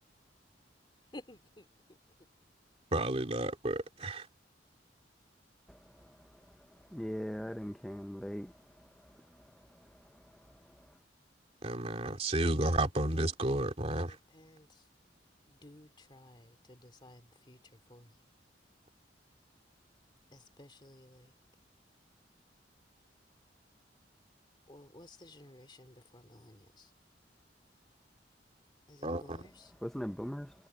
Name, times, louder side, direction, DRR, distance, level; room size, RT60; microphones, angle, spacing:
voice 1, 1.1-1.7 14.1-14.7 15.6-17.6 17.9-18.1 20.3-21.3 24.7-26.9 28.9-29.7, left 1 dB, 25° left, 2.4 m, -54 dB
voice 2, 2.9-4.3 11.6-14.2 29.0-29.4, right 1 dB, 35° right, 2.5 m, -32 dB
voice 3, 6.9-8.5 29.8-30.5, equal, ahead, 0.5 m, -39 dB
head